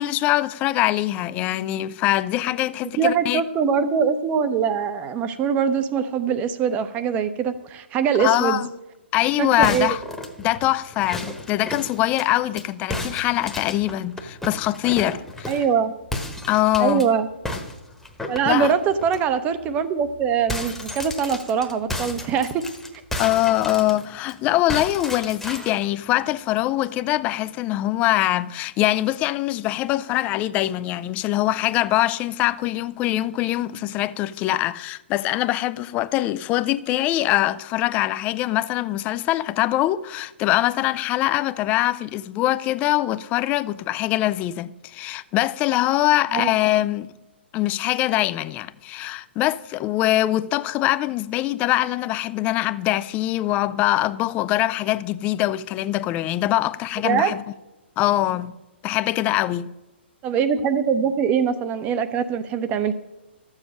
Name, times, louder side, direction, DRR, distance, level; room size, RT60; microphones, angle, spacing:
voice 1, 0.0-3.4 8.2-8.7 9.1-10.0 10.4-15.5 16.5-17.1 18.5-18.7 23.2-47.1 47.5-57.4 58.0-58.5 58.8-59.7, left 15 dB, 25° left, 0.4 m, -23 dB
voice 2, 3.0-8.6 9.4-10.0 15.5-16.0 16.8-17.3 18.3-22.6 46.3-46.5 57.0-57.3 60.2-62.9, right 7 dB, 25° right, 0.7 m, -22 dB
sound 1, 9.6-12.6 12.9-15.7 16.1-17.1 17.5-19.2 19.6-19.8 20.1-24.3 24.7-25.9, left 1 dB, 5° left, 1.1 m, -33 dB
13.0 x 7.3 x 6.3 m
figure-of-eight pair, 120°, 6 cm